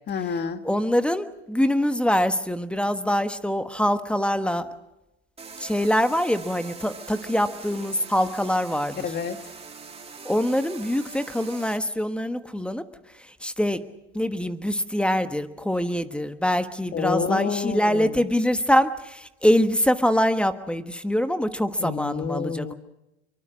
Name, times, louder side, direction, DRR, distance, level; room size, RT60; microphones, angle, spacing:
voice 1, 0.1-0.6 9.0-9.4 16.9-18.3 21.8-22.7, left 6 dB, 30° left, 9 dB, 1.9 m, -28 dB
voice 2, 0.6-4.7 5.6-9.0 10.2-12.8 13.4-13.8 14.1-22.7, equal, 5° left, 10 dB, 1.3 m, -24 dB
sound 1, 5.4-11.8, right 5 dB, 20° right, 2.7 m, -42 dB
24.5 x 23.5 x 6.2 m, 0.92 s
hypercardioid pair, 100°, 33 cm